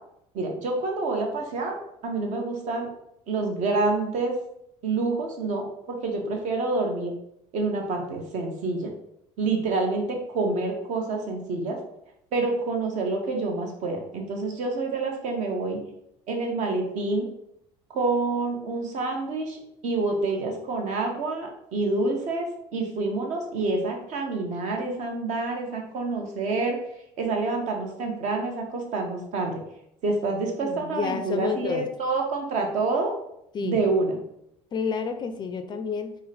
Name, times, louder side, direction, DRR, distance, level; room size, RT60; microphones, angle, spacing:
voice 1, 0.3-1.8 2.0-2.9 3.3-4.3 4.8-7.1 7.5-8.9 9.4-11.8 12.3-15.8 16.3-17.3 17.9-26.8 27.2-29.6 30.0-33.1 33.6-34.2, right 3 dB, 60° right, 2 dB, 0.9 m, -27 dB
voice 2, 30.6-31.9 33.5-33.8 34.7-36.2, left 6 dB, 30° left, 8 dB, 0.4 m, -30 dB
3.9 x 2.1 x 4.0 m, 0.77 s
cardioid pair, 115°, 14 cm